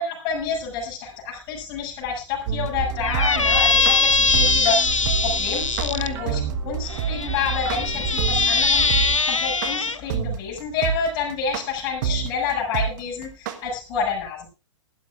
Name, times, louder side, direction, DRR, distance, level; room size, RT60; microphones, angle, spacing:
voice 1, 0.0-14.5, left 5 dB, 30° left, -3 dB, 6.9 m, -28 dB
sound 1, 2.5-13.6, right 8 dB, 35° right, 1.3 m, -26 dB
sound 2, 2.7-9.2, right 6 dB, 20° right, 2.5 m, -31 dB
Squeak, 3.0-6.1 6.9-10.0, left 4 dB, 80° left, 0.9 m, -21 dB
21.0 x 12.0 x 2.5 m, 0.30 s
figure-of-eight pair, 115°, 16 cm